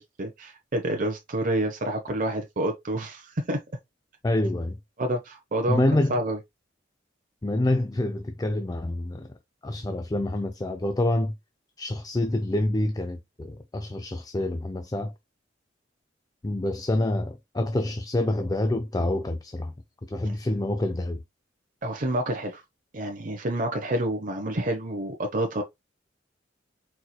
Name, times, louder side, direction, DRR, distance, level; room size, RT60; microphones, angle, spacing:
voice 1, 0.2-3.6 5.0-6.4 21.8-22.6 22.9-25.6, right 1 dB, 45° right, 0.9 m, -28 dB
voice 2, 4.2-4.8 5.7-6.1 7.4-9.3 9.6-11.4 11.8-15.1 16.4-19.7 20.1-21.2, left 1 dB, 20° left, 0.4 m, -27 dB
4.6 x 4.3 x 2.3 m
head